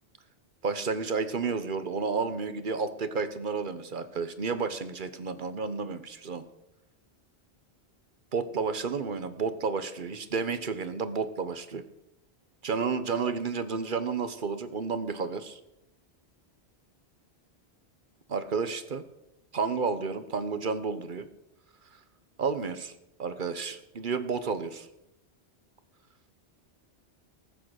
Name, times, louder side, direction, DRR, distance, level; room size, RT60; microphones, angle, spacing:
voice 1, 0.6-6.4 8.3-11.8 12.6-15.6 18.3-19.0 19.5-21.2 22.4-22.9 23.2-24.9, right 5 dB, 50° right, 11 dB, 1.2 m, -31 dB
18.5 x 7.6 x 6.5 m, 0.86 s
omnidirectional pair, 1.1 m